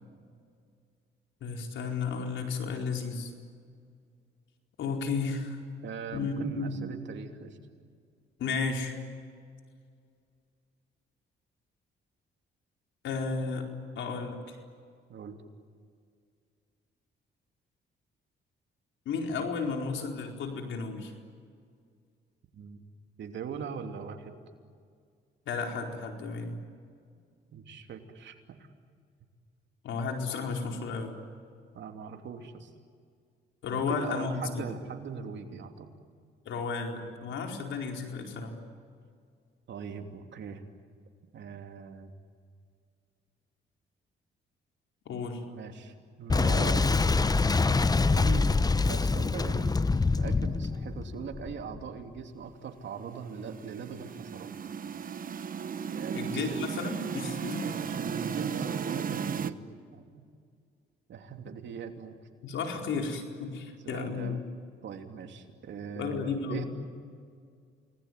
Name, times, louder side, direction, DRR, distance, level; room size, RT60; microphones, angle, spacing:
voice 1, 1.4-3.3 4.8-5.6 6.1-6.8 8.4-8.9 13.0-13.6 13.9-14.6 19.0-21.1 25.5-26.6 29.8-31.1 33.6-34.7 36.5-38.6 45.1-45.4 56.1-57.7 62.4-64.4 65.9-66.6, left 4 dB, 75° left, 3 dB, 4.5 m, -33 dB
voice 2, 5.8-7.6 15.1-15.4 22.5-22.8 23.2-24.4 27.5-28.6 31.7-32.7 33.7-35.9 39.7-40.6 41.3-42.1 45.5-46.9 47.5-54.5 55.9-56.7 57.6-60.2 61.1-62.1 63.8-64.4 64.8-66.6, right 6 dB, 65° right, 5 dB, 3.0 m, -41 dB
Boom, 46.3-51.9, left 3 dB, 20° left, 0.8 m, -25 dB
sound 1, 53.1-59.5, right 7 dB, 45° right, 1.1 m, -35 dB
29.0 x 20.0 x 9.5 m, 2.2 s
cardioid pair, 90°, 20 cm